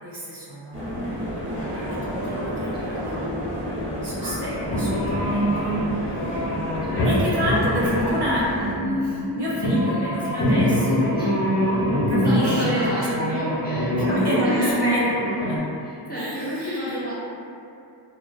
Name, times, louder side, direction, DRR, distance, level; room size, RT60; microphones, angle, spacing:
voice 1, 0.0-3.2 4.0-6.4 7.0-11.5 12.1-13.1 14.0-15.0 15.4-15.6 16.1-17.0, equal, 55° right, -7 dB, 0.7 m, -29 dB
sound 1, 0.7-8.7, equal, 25° right, 0.8 m, -30 dB
voice 2, 2.8-3.2 6.8-7.0 7.3-7.4 11.1-11.4 12.2-14.0 14.4-14.8 15.8-17.1, equal, 20° left, -10 dB, 0.5 m, -30 dB
sound 2, 4.6-15.6, equal, 60° left, 0.8 m, -24 dB
2.3 x 2.2 x 2.3 m, 2.6 s
wide cardioid pair, 70°, 50 cm